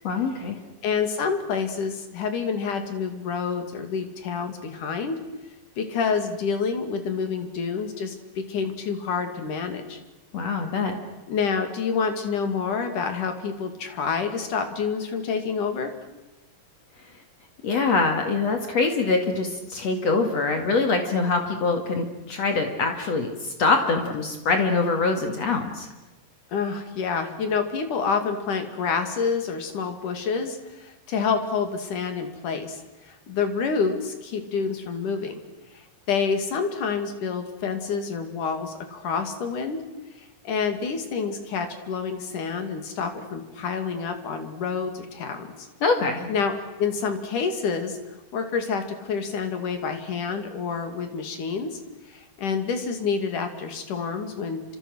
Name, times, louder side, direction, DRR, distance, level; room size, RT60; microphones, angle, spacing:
voice 1, 0.0-0.6 10.3-11.0 17.6-25.9 45.8-46.3, left 4 dB, 55° left, 4 dB, 3.2 m, -24 dB
voice 2, 0.8-5.2 5.8-10.0 11.3-15.9 26.5-35.3 36.1-39.8 40.4-45.7 46.3-48.0 48.3-51.8 52.1-54.8, left 5 dB, 70° left, 6 dB, 4.1 m, -28 dB
30.0 x 26.5 x 6.4 m, 1.1 s
omnidirectional pair, 3.8 m